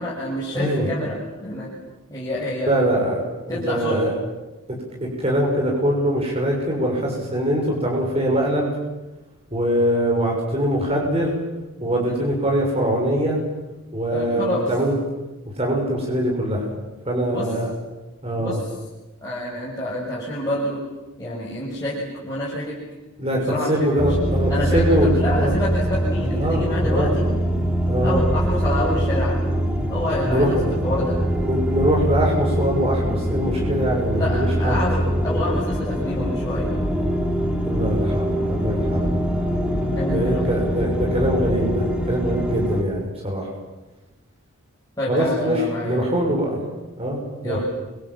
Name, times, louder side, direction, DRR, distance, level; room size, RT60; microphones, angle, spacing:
voice 1, 0.0-1.7 2.1-2.7 3.5-4.0 12.0-12.2 14.1-14.7 17.3-17.5 18.4-18.6 19.2-20.8 21.2-22.8 23.3-23.9 24.5-27.3 28.0-29.4 29.9-30.4 30.8-31.2 34.1-36.7 39.9-40.5 45.0-46.1 47.4-47.6, left 1 dB, 15° left, -8 dB, 7.2 m, -27 dB
voice 2, 0.5-0.9 2.7-4.1 4.7-8.7 9.5-11.4 11.8-13.4 13.9-14.9 15.6-16.6 17.0-17.7 18.2-18.6 23.2-25.1 25.4-25.5 26.3-27.1 27.9-28.2 30.2-30.6 31.3-34.8 37.6-39.2 40.1-43.5 45.1-46.6 47.0-47.6, equal, 25° right, -1 dB, 6.5 m, -23 dB
sound 1, 24.0-42.8, equal, 5° right, 3.6 m, -23 dB
29.5 x 25.5 x 7.7 m, 1.1 s
head